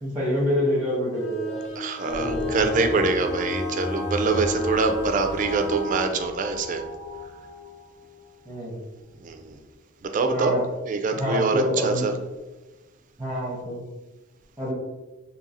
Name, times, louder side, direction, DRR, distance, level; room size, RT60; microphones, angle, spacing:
voice 1, 0.0-1.6 2.0-2.6 8.5-8.8 10.3-10.6 11.2-12.1 13.2-13.8 14.6-14.7, equal, 10° right, -7 dB, 0.7 m, -26 dB
Bowed string instrument, 1.1-6.1, left 2 dB, 35° left, 0.5 m, -33 dB
voice 2, 1.8-6.8 9.2-9.6 10.0-10.6 10.9-12.1, right 4 dB, 40° right, 6 dB, 0.3 m, -25 dB
sound 1, 2.1-8.5, left 1 dB, 75° left, 1.0 m, -35 dB
2.7 x 2.6 x 4.0 m, 1.1 s
head